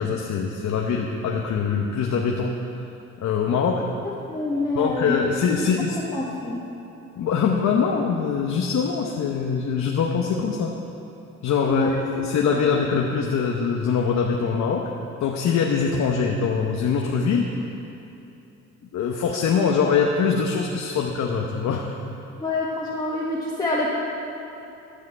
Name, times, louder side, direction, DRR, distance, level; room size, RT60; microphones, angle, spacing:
voice 1, 0.0-2.6 3.2-3.8 4.7-6.0 7.2-10.7 11.4-14.9 15.2-17.5 18.9-21.9, left 6 dB, 65° left, 1 dB, 0.9 m, -23 dB
voice 2, 4.3-5.2 5.5-5.7 6.1-6.6 11.7-12.1 12.6-12.7 22.4-23.9, left 2 dB, 15° left, -6 dB, 1.5 m, -26 dB
13.0 x 5.7 x 7.8 m, 2.8 s
cardioid pair, 90°, 30 cm